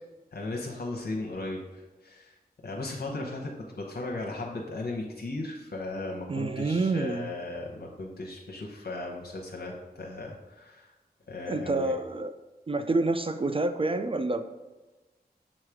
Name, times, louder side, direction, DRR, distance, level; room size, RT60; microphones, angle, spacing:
voice 1, 0.3-2.3 2.6-3.5 3.8-10.9 11.3-11.9, left 2 dB, 70° left, -1 dB, 0.9 m, -36 dB
voice 2, 6.3-7.3 11.5-12.3 12.7-14.4, right 2 dB, 35° right, 9 dB, 0.4 m, -28 dB
7.3 x 3.2 x 4.8 m, 1.2 s
wide cardioid pair, 60°, 17 cm